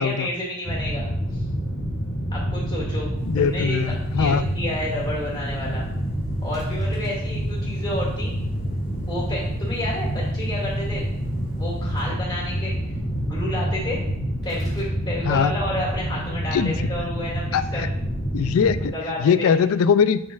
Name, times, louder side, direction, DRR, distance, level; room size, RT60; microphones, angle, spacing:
voice 1, 0.0-1.4 2.3-3.1 3.3-5.8 6.4-8.4 9.1-11.1 11.6-12.8 13.2-14.0 14.4-17.9 18.9-19.5, left 1 dB, 20° left, -5 dB, 2.1 m, -30 dB
sound 1, 0.6-18.9, equal, 40° left, 1.9 m, -27 dB
sound 2, 3.1-14.0, equal, 25° right, 1.3 m, -42 dB
voice 2, 3.3-4.4 15.2-15.5 16.5-16.9 17.5-17.9 18.3-18.9 19.2-20.2, left 6 dB, 80° left, 13 dB, 0.3 m, -21 dB
sound 3, 6.5-7.3 14.4-15.0, equal, ahead, 2.3 m, -47 dB
6.2 x 6.2 x 2.4 m, 0.79 s
head